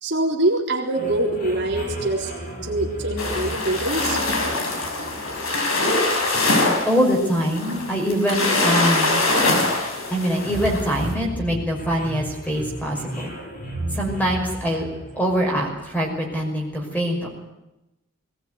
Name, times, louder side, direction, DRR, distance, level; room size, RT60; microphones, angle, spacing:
voice 1, 0.0-2.3 2.6-4.2, right 1 dB, 55° right, 0 dB, 3.8 m, -24 dB
sound 1, 0.9-16.3, equal, 40° left, 5.2 m, -35 dB
sound 2, 3.2-11.0, left 2 dB, 90° left, 6.1 m, -23 dB
voice 2, 6.8-9.2 10.1-13.3 13.9-14.9 15.1-17.3, equal, 5° left, 0 dB, 5.8 m, -23 dB
21.0 x 19.0 x 9.5 m, 0.95 s
head